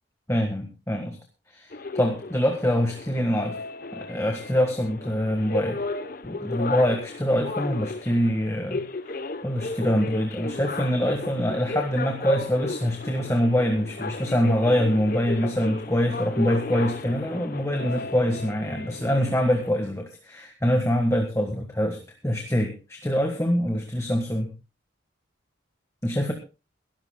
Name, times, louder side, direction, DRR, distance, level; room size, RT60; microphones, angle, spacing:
voice 1, 0.3-1.2 1.5-3.6 3.9-5.8 6.2-24.5 26.0-26.3, equal, 15° left, 4 dB, 1.4 m, -25 dB
sound 1, 1.7-19.7, left 3 dB, 45° left, 0.8 m, -35 dB
23.5 x 13.0 x 2.2 m, 0.31 s
head